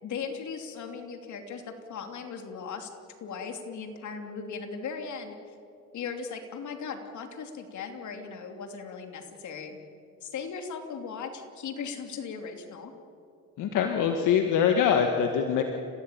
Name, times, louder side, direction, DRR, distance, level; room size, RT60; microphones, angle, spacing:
voice 1, 0.0-2.9 3.2-5.4 5.9-9.8 10.2-12.9, left 5 dB, 70° left, 5 dB, 3.0 m, -38 dB
voice 2, 13.6-15.6, left 7 dB, 85° left, 4 dB, 1.7 m, -24 dB
30.0 x 16.0 x 9.2 m, 2.7 s
cardioid pair, 90°, 30 cm